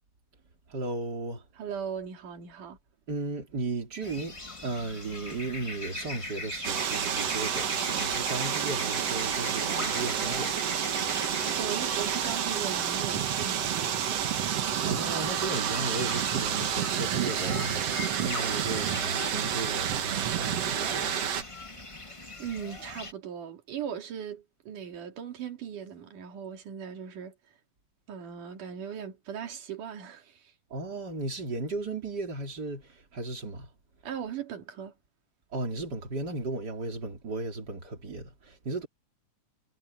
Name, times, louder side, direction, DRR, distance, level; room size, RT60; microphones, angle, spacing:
voice 1, 0.7-1.4 3.1-10.6 14.8-21.5 30.7-33.7 35.5-38.9, right 2 dB, 30° right, 3.7 m, -35 dB
voice 2, 1.6-2.8 11.0-14.2 22.1-27.4 28.1-30.5 34.0-34.9, right 8 dB, 90° right, 4.0 m, -38 dB
sound 1, 4.0-23.1, left 2 dB, 35° left, 0.5 m, -40 dB
sound 2, 6.6-21.4, right 9 dB, 60° right, 2.2 m, -30 dB
omnidirectional pair, 3.5 m